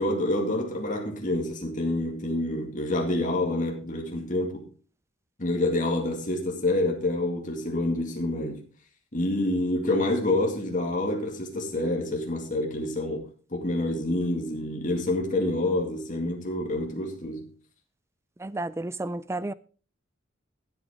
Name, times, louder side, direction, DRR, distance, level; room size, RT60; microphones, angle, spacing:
voice 1, 0.0-4.7 5.4-8.6 9.1-17.5, left 1 dB, 40° left, 2.2 m, -27 dB
voice 2, 18.4-19.5, right 2 dB, 15° right, 0.4 m, -32 dB
15.0 x 8.5 x 3.7 m
head